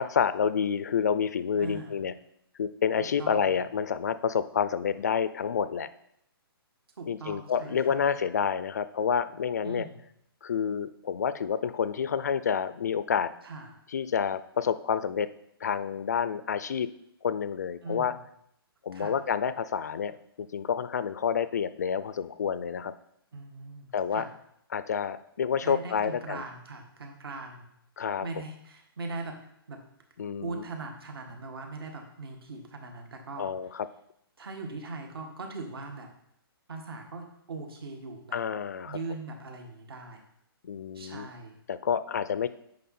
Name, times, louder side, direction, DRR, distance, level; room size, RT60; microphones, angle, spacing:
voice 1, 0.0-2.1 2.6-5.9 7.1-9.9 10.4-13.3 13.9-15.3 15.6-16.9 17.2-18.1 18.8-22.9 23.9-24.2 24.7-26.4 28.0-28.3 30.2-30.7 33.4-33.9 38.3-39.0 40.6-41.3 41.7-42.5, left 7 dB, 45° left, 14 dB, 0.4 m, -29 dB
voice 2, 1.6-2.0 3.0-3.5 7.0-8.0 9.6-10.0 13.4-13.8 17.8-18.2 18.9-19.2 23.3-24.3 25.6-27.6 28.2-29.4 29.7-29.8 30.4-33.5 34.4-36.1 36.7-38.4 38.8-40.2 40.9-41.5, right 3 dB, 70° right, 4 dB, 1.8 m, -40 dB
9.2 x 5.2 x 4.3 m, 0.75 s
hypercardioid pair, 175°, 13 cm